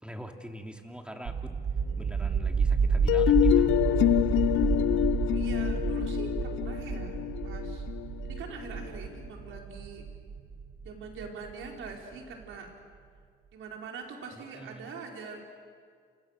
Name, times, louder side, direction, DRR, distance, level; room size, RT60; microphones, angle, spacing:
voice 1, 0.0-1.5 2.0-3.7 14.3-14.9, equal, 5° right, 3 dB, 3.2 m, -44 dB
sound 1, 1.3-11.9, right 5 dB, 45° right, 1.5 m, -30 dB
sound 2, 3.1-8.9, left 13 dB, 80° left, 0.8 m, -26 dB
voice 2, 5.3-7.2 7.4-7.8 8.2-10.0 10.8-12.7 13.5-15.4, right 4 dB, 80° right, 1 dB, 4.9 m, -43 dB
29.5 x 29.0 x 6.7 m, 2.1 s
cardioid pair, 90°, 20 cm